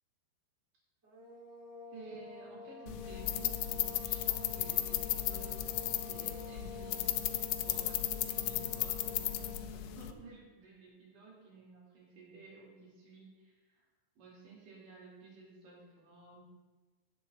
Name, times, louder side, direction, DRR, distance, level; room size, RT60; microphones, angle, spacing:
sound 1, 1.0-9.8, left 3 dB, 25° right, 1.7 m, -49 dB
voice 1, 1.9-7.3 7.5-13.8 14.2-16.4, right 3 dB, 70° right, -5 dB, 4.4 m, -54 dB
sound 2, 2.9-10.1, left 13 dB, 85° left, 1.6 m, -35 dB
16.5 x 7.0 x 3.5 m, 1.3 s
omnidirectional pair, 3.9 m